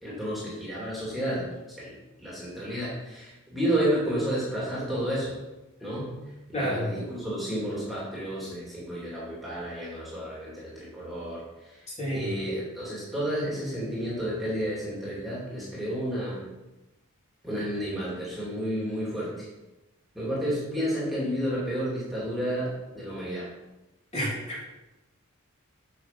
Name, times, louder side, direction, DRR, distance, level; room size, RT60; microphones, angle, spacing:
voice 1, 0.0-1.5 1.8-1.9 2.2-5.4 5.8-6.2 6.5-16.5 17.4-19.5 20.1-23.5, equal, ahead, -7 dB, 2.9 m, -31 dB
voice 2, 6.5-6.9 12.0-12.3 24.1-24.6, equal, 30° left, -5 dB, 3.3 m, -29 dB
9.4 x 5.8 x 6.0 m, 1.0 s
head